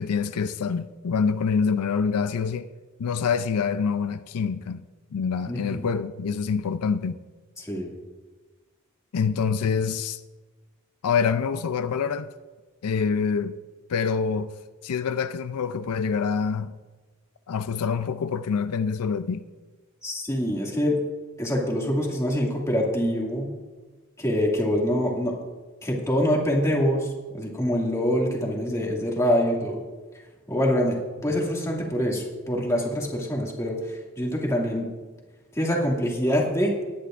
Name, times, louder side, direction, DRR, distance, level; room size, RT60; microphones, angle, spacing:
voice 1, 0.0-2.7 3.0-4.8 5.1-7.2 9.1-10.2 11.0-12.3 12.8-13.6 13.9-14.5 14.8-16.7 17.5-19.5, left 6 dB, 85° left, 0.4 m, -26 dB
voice 2, 5.5-5.8 7.6-7.9 20.0-21.0 21.4-23.6 24.2-25.3 25.8-29.8 30.5-31.0 31.2-34.9 35.5-36.7, equal, 15° left, 2.2 m, -25 dB
19.0 x 10.0 x 2.5 m
head